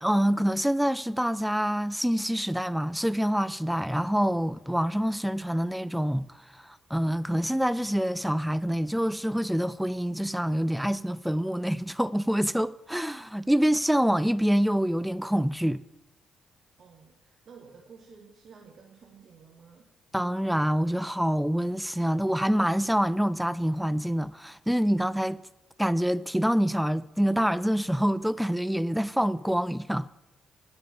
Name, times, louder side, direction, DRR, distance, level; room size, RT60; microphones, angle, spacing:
voice 1, 0.0-6.2 6.5-15.8 20.1-25.4 25.8-30.1, equal, 5° right, 0.3 m, -26 dB
voice 2, 16.8-19.9, right 5 dB, 55° right, 1.1 m, -52 dB
9.1 x 6.9 x 7.0 m
hypercardioid pair, 45°, 0 cm